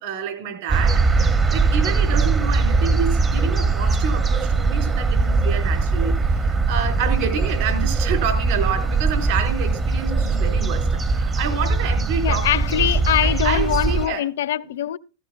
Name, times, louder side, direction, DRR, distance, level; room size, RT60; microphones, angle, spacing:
voice 1, 0.0-12.8 13.2-14.2 14.6-14.8, right 6 dB, 60° right, 4.1 m, -28 dB
sound 1, 0.7-14.1, right 4 dB, 20° right, 0.6 m, -20 dB
voice 2, 12.2-15.0, left 11 dB, 80° left, 0.5 m, -23 dB
15.0 x 15.0 x 2.3 m
supercardioid pair, 140°, 0 cm